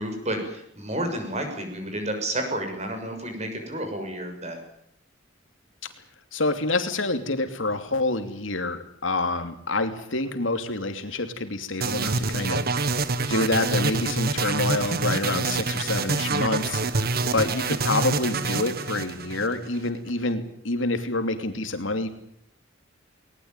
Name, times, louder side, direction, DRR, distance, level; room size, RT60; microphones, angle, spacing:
voice 1, 0.0-4.6, right 1 dB, 35° right, 4 dB, 6.7 m, -31 dB
voice 2, 6.3-12.6 12.9-22.1, left 2 dB, 85° left, 8 dB, 3.0 m, -27 dB
sound 1, 11.8-19.9, right 3 dB, 55° right, 1.4 m, -26 dB
20.0 x 20.0 x 9.2 m, 0.71 s
head